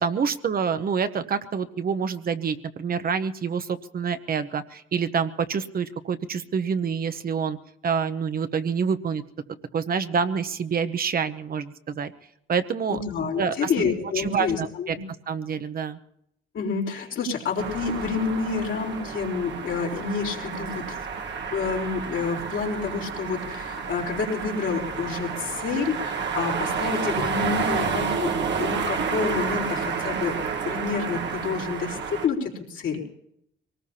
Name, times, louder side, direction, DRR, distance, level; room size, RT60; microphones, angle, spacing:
voice 1, 0.0-7.6 7.8-9.2 9.7-12.1 12.5-13.0 13.4-13.7 14.2-15.0 15.3-16.0, right 6 dB, 50° right, 10 dB, 0.9 m, -27 dB
voice 2, 12.9-15.0 16.5-21.0 21.5-30.4 30.6-33.0, left 5 dB, 70° left, -1 dB, 4.1 m, -28 dB
sound 1, 17.6-32.3, right 6 dB, 65° right, 1.4 m, -30 dB
23.5 x 19.0 x 2.8 m, 0.73 s
cardioid pair, 90°, 20 cm